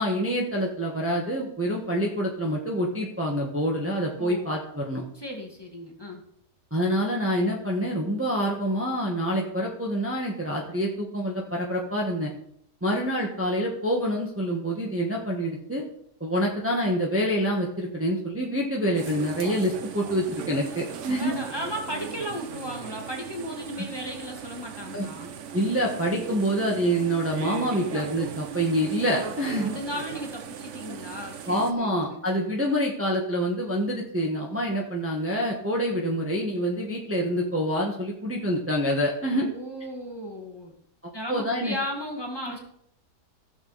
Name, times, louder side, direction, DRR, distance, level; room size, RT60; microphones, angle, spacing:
voice 1, 0.0-5.0 6.7-12.3 12.8-15.8 16.2-21.3 23.8-23.9 24.9-25.1 25.5-29.7 31.4-39.5 41.3-41.7 42.4-42.5, equal, 10° right, -2 dB, 1.4 m, -26 dB
voice 2, 4.2-4.5 5.1-6.2 21.0-25.4 29.6-32.4 39.3-40.7 41.1-42.6, equal, 15° left, 0 dB, 1.8 m, -35 dB
sound 1, 18.9-31.7, right 8 dB, 55° right, 1.0 m, -38 dB
15.5 x 6.8 x 4.1 m, 0.70 s
omnidirectional pair, 1.7 m